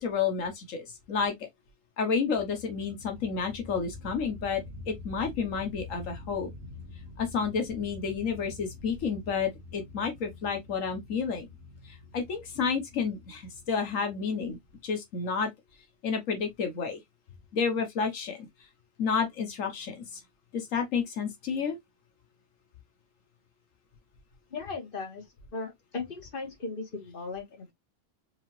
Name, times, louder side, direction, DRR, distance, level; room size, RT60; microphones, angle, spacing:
voice 1, 0.0-1.3 2.0-6.5 7.2-11.5 11.8-14.6 14.8-15.5 16.0-17.0 17.5-18.5 19.0-20.2 20.5-21.8, left 5 dB, 85° left, 1.4 m, -30 dB
sound 1, 2.4-14.8, left 3 dB, 80° right, 1.4 m, -46 dB
voice 2, 24.5-25.2 25.5-27.7, left 3 dB, 45° left, 1.8 m, -37 dB
4.8 x 2.8 x 3.0 m
omnidirectional pair, 1.3 m